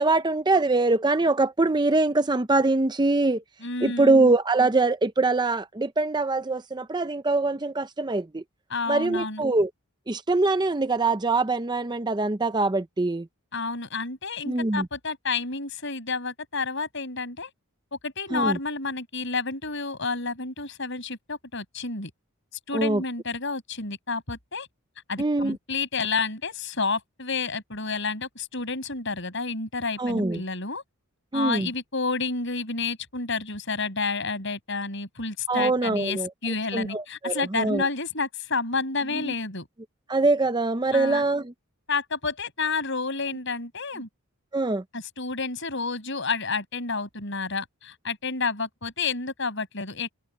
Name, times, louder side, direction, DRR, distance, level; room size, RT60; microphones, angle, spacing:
voice 1, 0.0-3.4 3.8-8.4 8.9-9.7 10.1-13.3 14.5-14.9 18.3-18.6 22.7-23.0 25.2-25.6 30.0-30.4 31.3-31.7 35.5-37.8 39.1-39.3 40.1-41.5 44.5-44.8, right 3 dB, 20° right, 0.5 m, -23 dB
voice 2, 3.6-4.3 8.7-9.4 13.5-17.5 18.0-22.1 22.7-24.7 25.1-30.8 31.3-39.7 40.9-41.2 41.9-44.1 44.9-50.1, left 4 dB, 55° left, 6.4 m, -30 dB
head